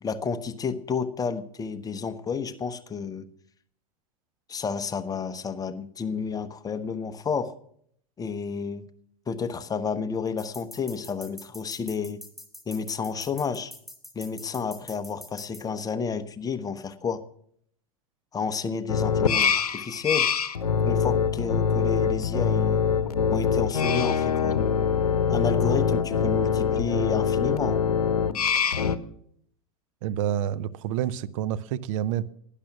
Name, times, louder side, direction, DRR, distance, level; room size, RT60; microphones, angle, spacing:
voice 1, 0.0-3.3 4.5-7.5 8.2-8.9 9.3-12.2 12.7-13.7 14.1-17.2 18.3-20.3 20.8-22.8 23.3-24.6 25.3-27.8, left 5 dB, 20° left, 1.0 m, -31 dB
sound 1, 10.4-15.6, left 1 dB, ahead, 2.0 m, -44 dB
sound 2, 18.9-29.0, left 6 dB, 85° left, 0.8 m, -24 dB
voice 2, 30.0-32.3, right 10 dB, 60° right, 0.7 m, -28 dB
12.0 x 10.0 x 6.0 m
hypercardioid pair, 95°, 19 cm